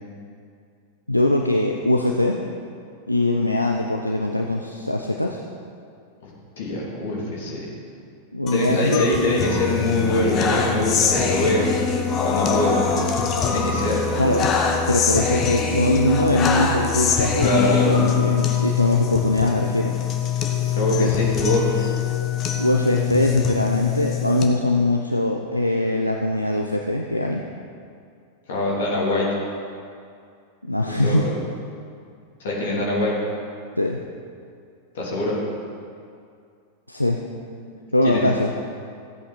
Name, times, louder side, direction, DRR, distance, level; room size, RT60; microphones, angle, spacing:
voice 1, 1.1-2.4 3.1-5.4 8.3-9.1 14.2-14.5 14.9-20.0 20.9-21.1 22.6-27.5 30.7-31.2 33.8-34.0 36.9-37.2 37.9-38.5, left 1 dB, 85° left, 1 dB, 0.6 m, -22 dB
voice 2, 6.6-7.7 8.5-11.7 12.2-13.1 13.4-14.0 17.4-17.9 20.7-21.8 28.5-29.3 30.8-31.3 32.4-33.2 34.9-35.4 37.7-38.2, left 1 dB, 60° left, -4 dB, 3.2 m, -23 dB
sound 1, 8.5-24.5, left 6 dB, 30° left, 1.2 m, -23 dB
15.0 x 8.4 x 4.3 m, 2.4 s
figure-of-eight pair, 90°, 0 cm